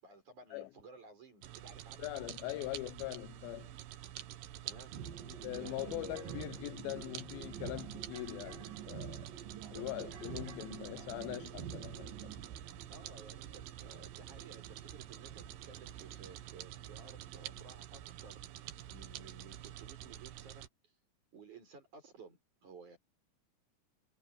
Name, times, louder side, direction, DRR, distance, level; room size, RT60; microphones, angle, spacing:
voice 1, 0.0-2.1 4.6-5.0 5.5-6.5 9.5-10.8 12.9-18.4 18.9-20.7 21.3-23.0, right 4 dB, 50° right, 7.9 m, -55 dB
sound 1, 1.4-20.7, right 12 dB, 80° right, 3.2 m, -48 dB
voice 2, 2.0-3.7 5.3-9.3 9.7-12.4, left 19 dB, 80° left, 2.2 m, -42 dB
sound 2, 4.9-17.6, right 8 dB, 65° right, 4.0 m, -49 dB
omnidirectional pair, 4.6 m